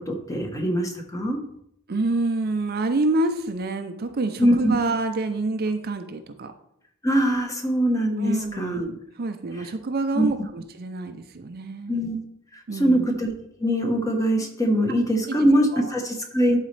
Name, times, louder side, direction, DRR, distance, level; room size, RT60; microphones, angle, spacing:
voice 1, 0.0-1.4 4.4-4.7 7.0-8.9 10.1-10.3 11.9-12.2 12.7-13.3 13.6-16.6, equal, 15° left, 2 dB, 1.0 m, -22 dB
voice 2, 1.9-6.5 8.2-12.0 12.7-13.1 15.3-15.4 15.7-15.9, right 2 dB, 50° right, 8 dB, 0.5 m, -27 dB
11.5 x 4.1 x 3.3 m, 0.74 s
head